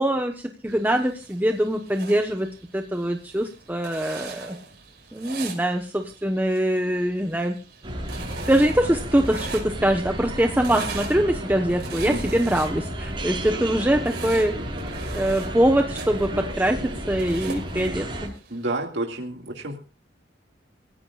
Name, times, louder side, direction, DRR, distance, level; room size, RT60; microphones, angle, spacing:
voice 1, 0.0-4.6 5.1-7.6 8.5-14.6 14.8-18.3, right 1 dB, 10° right, 4 dB, 1.1 m, -23 dB
sound 1, 0.7-18.7, right 5 dB, 60° right, 6.0 m, -42 dB
sound 2, 7.8-18.3, right 1 dB, 30° right, 7.1 m, -32 dB
voice 2, 12.1-12.4 18.5-19.8, right 2 dB, 90° right, 1 dB, 2.2 m, -30 dB
27.0 x 15.5 x 2.4 m, 0.34 s
head